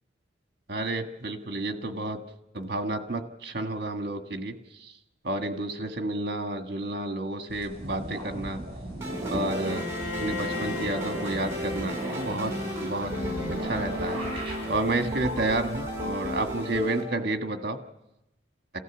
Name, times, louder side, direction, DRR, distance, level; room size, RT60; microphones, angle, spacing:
voice 1, 0.7-2.2 2.5-4.5 4.8-4.9 5.2-8.6 9.3-9.9 10.2-12.5 12.8-13.1 13.6-14.2 14.7-17.8, right 2 dB, 55° right, 6 dB, 1.5 m, -30 dB
sound 1, 7.5-16.4, right 1 dB, 30° right, 7.8 m, -38 dB
sound 2, 9.0-17.0, equal, 15° right, 6.9 m, -34 dB
Bowed string instrument, 9.6-15.6, left 3 dB, 40° left, 6.5 m, -38 dB
28.0 x 15.0 x 7.1 m, 0.93 s
head